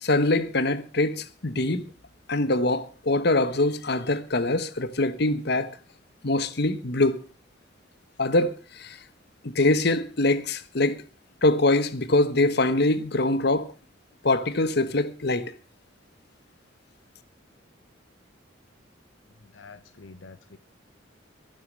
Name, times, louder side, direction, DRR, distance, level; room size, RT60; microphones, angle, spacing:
voice 1, 0.0-1.9 2.3-5.7 6.2-7.2 8.2-9.0 9.4-11.0 11.4-13.7 14.2-15.5, left 2 dB, 60° left, 1.2 m, -23 dB
voice 2, 19.4-20.6, left 4 dB, 80° left, 0.9 m, -47 dB
13.0 x 12.0 x 6.2 m
head